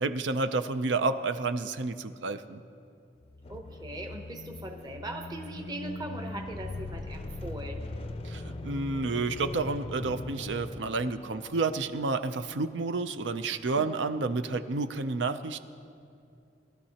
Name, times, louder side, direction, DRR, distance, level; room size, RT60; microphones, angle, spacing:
voice 1, 0.0-2.6 8.2-15.6, right 3 dB, 90° right, 11 dB, 0.5 m, -30 dB
sound 1, 3.2-12.0, left 2 dB, 30° left, 0.4 m, -40 dB
voice 2, 3.5-7.8 13.8-14.1, right 1 dB, 20° right, 2 dB, 0.8 m, -40 dB
21.0 x 13.0 x 2.9 m, 2.5 s
head